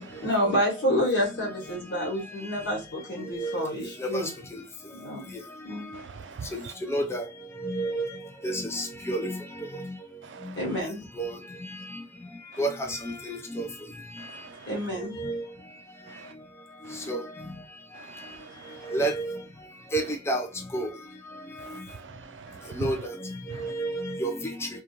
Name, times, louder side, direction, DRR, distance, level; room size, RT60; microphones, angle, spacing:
voice 1, 0.2-4.3 4.9-5.3 5.6-5.9 10.6-11.0 14.7-15.3, equal, 70° left, 1.3 m, -28 dB
voice 2, 3.4-3.7 4.0-4.2 4.5-4.6 6.9-7.2 7.6-8.1 8.4-9.4 11.2-11.3 12.6-13.7 15.2-15.4 16.9-17.2 18.9-19.4 19.9-20.5 20.7-20.9 22.8-23.0 23.6-24.7, right 1 dB, 15° left, 0.4 m, -29 dB
voice 3, 5.9-6.7 10.2-10.6 14.2-14.7 16.1-16.3 16.9-17.1 17.9-18.9 21.7-22.9 23.5-23.7, right 5 dB, 80° right, 0.4 m, -42 dB
2.4 x 2.3 x 2.9 m
head